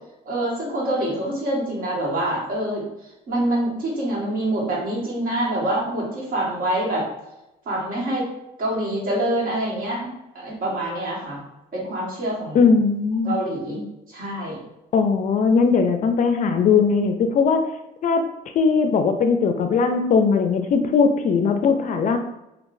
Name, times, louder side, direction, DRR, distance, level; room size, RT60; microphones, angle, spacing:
voice 1, 0.2-2.9 3.3-7.1 7.6-8.3 8.6-10.1 10.3-11.4 11.7-12.6 13.2-14.6, right 1 dB, 55° right, -5 dB, 1.5 m, -25 dB
voice 2, 12.5-13.4 14.9-17.7 18.0-18.2 18.6-22.2, left 5 dB, 50° left, 7 dB, 0.4 m, -19 dB
3.6 x 2.4 x 2.6 m, 0.91 s
cardioid pair, 110°, 17 cm